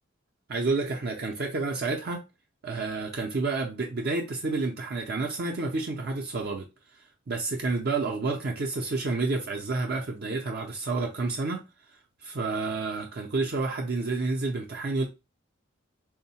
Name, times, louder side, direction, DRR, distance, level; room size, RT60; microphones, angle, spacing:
voice 1, 0.5-2.2 2.6-6.7 6.9-15.0, right 3 dB, 50° right, 0.5 m, -30 dB
3.6 x 2.1 x 4.1 m
head